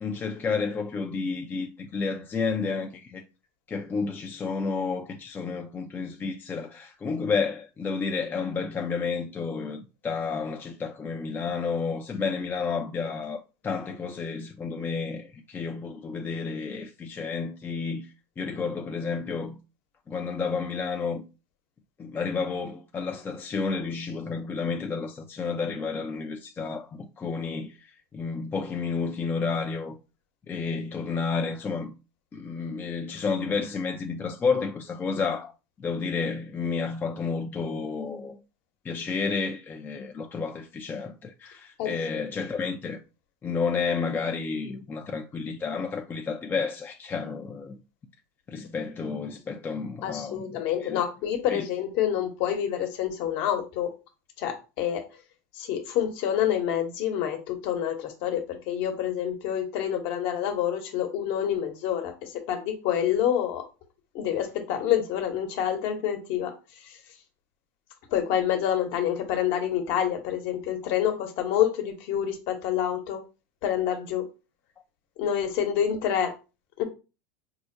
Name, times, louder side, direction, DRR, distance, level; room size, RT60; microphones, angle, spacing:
voice 1, 0.0-3.2 3.7-19.6 20.1-21.2 22.0-30.0 30.5-31.9 32.3-35.5 35.8-38.4 38.8-43.0 43.4-47.8 48.5-50.4 50.8-51.0 51.5-51.7, left 5 dB, 20° left, 0.4 m, -31 dB
voice 2, 41.8-42.2 50.0-53.9 54.4-55.0 55.6-62.1 62.5-63.6 64.1-66.5 68.1-73.2 73.6-74.2 75.2-76.3 76.8-76.9, left 10 dB, 60° left, 1.0 m, -27 dB
4.5 x 2.1 x 2.6 m
supercardioid pair, 110°, 10 cm